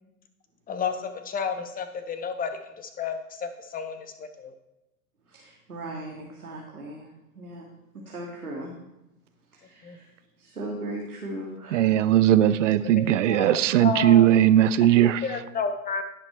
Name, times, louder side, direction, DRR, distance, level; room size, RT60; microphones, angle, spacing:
voice 1, 0.7-4.5 9.8-10.0 12.8-14.3 14.9-16.0, left 5 dB, 20° left, 1.1 m, -32 dB
voice 2, 5.3-7.1 7.4-7.7 8.1-8.7 9.5-10.1 10.4-12.0 14.6-14.8, right 1 dB, 85° right, 1.9 m, -38 dB
voice 3, 11.7-15.2, right 11 dB, 60° right, 0.7 m, -19 dB
16.0 x 6.0 x 4.5 m
figure-of-eight pair, 90°, 42 cm